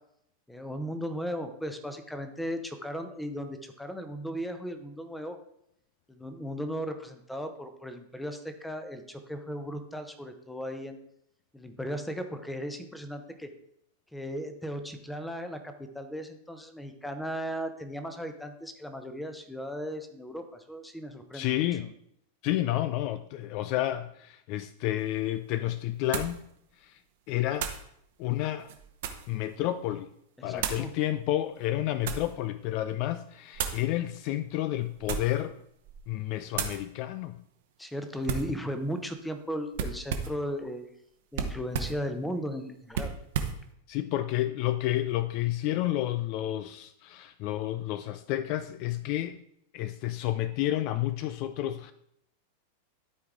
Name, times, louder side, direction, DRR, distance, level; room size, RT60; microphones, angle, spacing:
voice 1, 0.5-5.4 6.1-11.0 11.5-13.5 14.1-21.9 30.4-30.9 37.8-40.8 41.3-43.1, equal, 5° left, 0.9 m, -36 dB
voice 2, 21.3-21.9 22.4-26.4 26.8-27.0 27.3-27.7 28.2-28.7 29.3-30.1 30.4-35.6 36.1-37.4 43.9-49.4 49.7-51.9, left 14 dB, 45° left, 0.3 m, -30 dB
sound 1, 25.0-25.1 26.1-26.4 27.6-27.9 28.6-29.3 30.6-30.9 31.6-32.3 33.5-33.9 34.9-35.4 35.8-36.1 36.5-36.8 38.3-38.6 39.7-40.4 41.3-42.0 42.9-43.6, right 7 dB, 55° right, 0.9 m, -33 dB
12.5 x 4.6 x 3.7 m
figure-of-eight pair, 90°, 0 cm